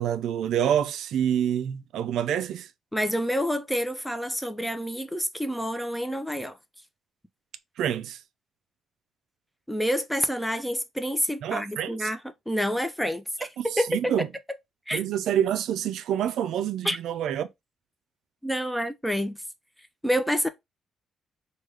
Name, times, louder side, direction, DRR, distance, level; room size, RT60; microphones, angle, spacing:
voice 1, 0.0-2.7 7.8-8.2 11.4-12.1 13.6-14.3 14.9-17.5, right 10 dB, 80° right, 0.3 m, -27 dB
voice 2, 2.9-6.6 9.7-14.1 14.9-15.0 16.8-17.0 18.4-19.4 20.0-20.5, equal, 5° left, 0.5 m, -28 dB
3.2 x 2.3 x 3.3 m
cardioid pair, 90°, 0 cm